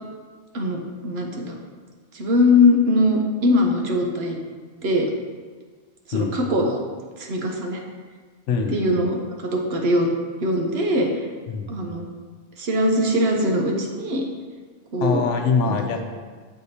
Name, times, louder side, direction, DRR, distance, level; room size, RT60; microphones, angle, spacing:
voice 1, 0.5-1.6 2.1-4.4 4.8-5.1 6.1-6.8 7.2-7.8 8.7-10.1 10.4-11.3 11.7-12.1 12.6-14.2 14.9-15.2 15.6-15.8, left 1 dB, 60° right, 1 dB, 1.0 m, -21 dB
voice 2, 8.5-8.9 11.5-11.9 15.0-16.0, left 5 dB, 85° left, 4 dB, 1.0 m, -23 dB
7.3 x 4.7 x 2.8 m, 1.5 s
omnidirectional pair, 1.2 m